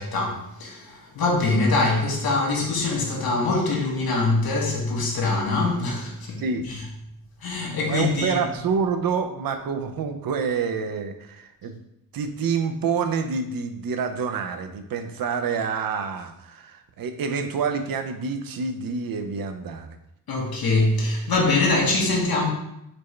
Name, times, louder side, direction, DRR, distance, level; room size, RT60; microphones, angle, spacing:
voice 1, 0.0-6.8 7.4-8.4 20.3-22.5, left 3 dB, 85° left, 1.0 m, -23 dB
voice 2, 7.9-11.8 12.1-20.0, right 5 dB, 75° right, 0.5 m, -27 dB
4.3 x 3.2 x 3.1 m
wide cardioid pair, 135°, 35 cm